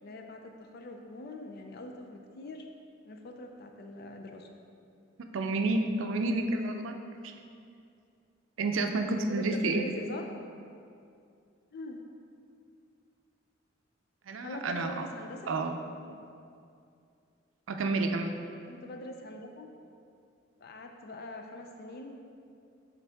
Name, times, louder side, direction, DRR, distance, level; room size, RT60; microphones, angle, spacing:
voice 1, 0.0-2.7 3.1-4.5 9.3-10.3 11.7-12.0 14.4-15.5 16.1-16.2 18.6-19.7 20.6-22.2, left 1 dB, 50° left, 4 dB, 0.4 m, -43 dB
voice 2, 5.3-6.9 7.2-7.3 8.6-9.9 14.3-15.1 15.5-15.8 17.7-18.3, right 2 dB, 75° right, 5 dB, 0.5 m, -30 dB
6.9 x 4.0 x 3.5 m, 2.4 s
head